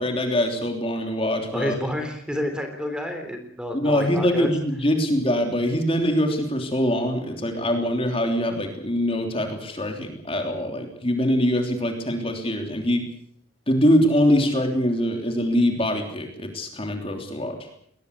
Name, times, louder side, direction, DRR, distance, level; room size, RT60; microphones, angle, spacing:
voice 1, 0.0-1.8 3.7-13.0 13.7-17.6, equal, 25° left, 4 dB, 3.3 m, -23 dB
voice 2, 1.5-4.5, equal, 5° right, 6 dB, 3.7 m, -29 dB
21.0 x 20.5 x 8.2 m, 0.69 s
head